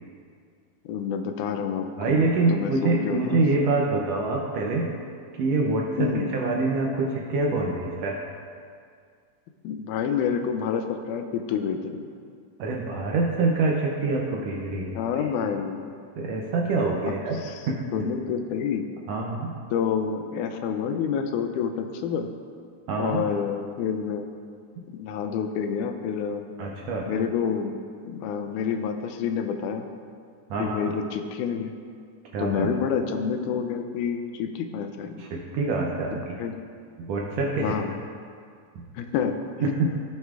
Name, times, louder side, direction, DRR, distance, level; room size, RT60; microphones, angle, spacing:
voice 1, 0.9-2.2 2.5-3.4 6.0-6.3 9.6-12.0 15.0-15.9 17.1-17.2 17.4-17.5 17.9-18.8 19.7-22.3 23.0-24.3 24.9-26.4 27.1-27.8 28.1-29.9 30.6-31.7 32.4-35.2 36.4-36.5 37.6-37.9 38.9-39.7, left 7 dB, 85° left, 7 dB, 2.1 m, -28 dB
voice 2, 2.0-4.9 5.4-8.2 12.6-15.5 16.2-18.0 19.1-19.6 22.9-23.2 26.6-27.1 30.5-30.8 32.3-32.7 35.2-36.4 37.0-37.7 38.8-38.9 39.6-39.9, right 3 dB, 75° right, -2 dB, 1.6 m, -26 dB
15.0 x 6.0 x 2.4 m, 2.2 s
omnidirectional pair, 3.5 m